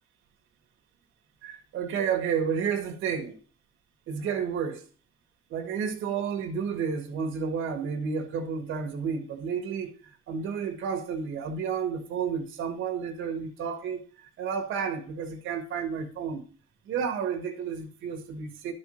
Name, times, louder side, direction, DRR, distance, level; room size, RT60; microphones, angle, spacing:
voice 1, 1.4-3.4 4.1-4.8 5.5-9.9 10.3-14.0 14.4-16.4 16.9-18.7, right 6 dB, 85° right, 1.6 m, -31 dB
11.5 x 4.4 x 6.3 m
cardioid pair, 90°, 20 cm